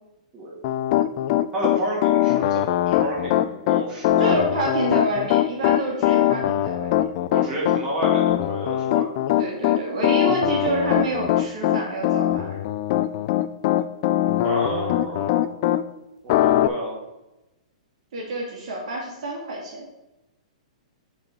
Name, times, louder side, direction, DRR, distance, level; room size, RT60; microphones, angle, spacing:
voice 1, 0.3-0.7 1.5-4.4 7.3-9.1 14.4-15.5 16.2-17.0, right 1 dB, 20° right, -5 dB, 2.7 m, -30 dB
Piano, 0.6-15.8 16.3-16.7, left 13 dB, 45° left, 0.4 m, -21 dB
voice 2, 4.2-6.9 9.4-12.6 18.1-19.8, right 2 dB, 60° right, -2 dB, 2.4 m, -28 dB
9.0 x 4.2 x 4.5 m, 0.98 s
hypercardioid pair, 145°, 4 cm